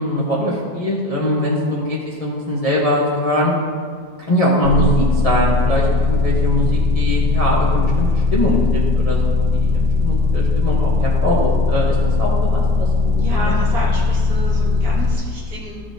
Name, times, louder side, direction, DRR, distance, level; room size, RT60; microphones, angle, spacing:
voice 1, 0.0-3.5 4.3-13.5, left 1 dB, 25° left, -5 dB, 0.9 m, -22 dB
sound 1, 4.6-15.1, left 3 dB, 40° right, 1.7 m, -18 dB
voice 2, 13.1-15.9, right 1 dB, 55° right, -3 dB, 2.0 m, -30 dB
13.5 x 6.9 x 2.7 m, 2.1 s
omnidirectional pair, 2.0 m